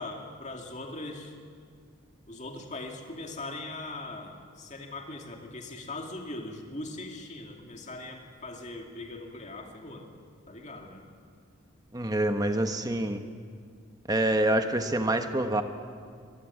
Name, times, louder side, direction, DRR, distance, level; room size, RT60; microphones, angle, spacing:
voice 1, 0.0-1.4 2.3-10.1 10.5-11.0, left 2 dB, 35° left, 2 dB, 2.4 m, -40 dB
voice 2, 11.9-13.2 14.1-15.6, right 1 dB, 15° right, 7 dB, 1.1 m, -26 dB
25.0 x 15.5 x 9.7 m, 2.1 s
head